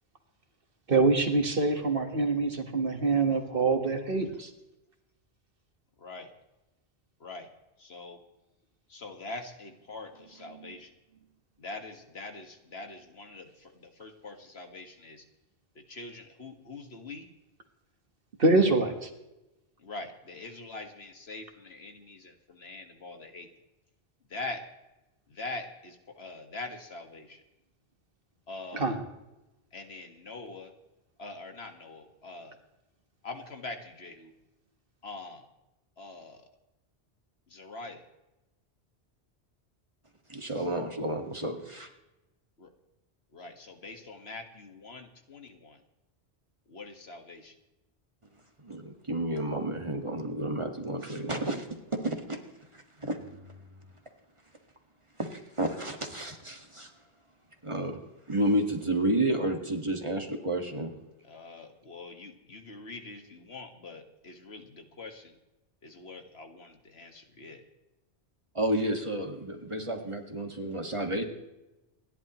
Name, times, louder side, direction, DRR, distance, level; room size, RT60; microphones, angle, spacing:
voice 1, 0.9-4.5 10.4-10.7 18.4-19.1 28.7-29.0, right 3 dB, 55° right, 6 dB, 1.7 m, -25 dB
voice 2, 8.9-10.9 11.6-13.4 14.0-15.2 15.9-17.3 19.8-22.3 22.6-23.5 24.3-24.6 25.4-27.3 28.5-28.9 29.7-30.7 31.2-32.5 33.2-34.3 35.0-35.4 36.0-36.4 37.5-38.0 42.6-42.7 43.3-45.7 46.7-47.5 61.3-65.2 65.8-67.6, left 3 dB, 65° left, 5 dB, 1.9 m, -43 dB
voice 3, 40.3-41.9 48.6-51.7 52.0-52.4 52.7-53.6 55.2-56.9 57.6-58.0 58.3-60.9 68.6-71.2, right 1 dB, 25° right, 4 dB, 1.8 m, -31 dB
28.0 x 11.5 x 3.1 m, 0.98 s
omnidirectional pair, 1.1 m